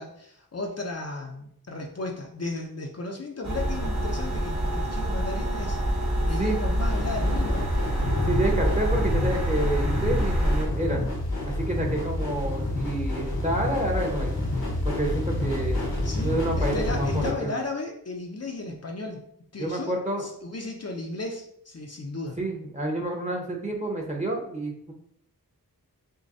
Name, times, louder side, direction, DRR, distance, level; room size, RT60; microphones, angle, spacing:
voice 1, 0.0-5.8 6.2-7.7 16.0-19.2 19.5-22.4, left 2 dB, 45° left, 1 dB, 0.6 m, -35 dB
sound 1, 3.4-10.6, right 1 dB, 50° right, 1.1 m, -27 dB
sound 2, 6.7-17.3, left 1 dB, 85° left, 1.1 m, -28 dB
voice 2, 8.3-11.0 11.4-14.3 14.8-15.8 16.2-17.5 19.6-20.3 22.4-24.9, right 1 dB, 20° right, 0 dB, 1.0 m, -29 dB
6.3 x 2.2 x 2.7 m, 0.69 s
wide cardioid pair, 50°, 36 cm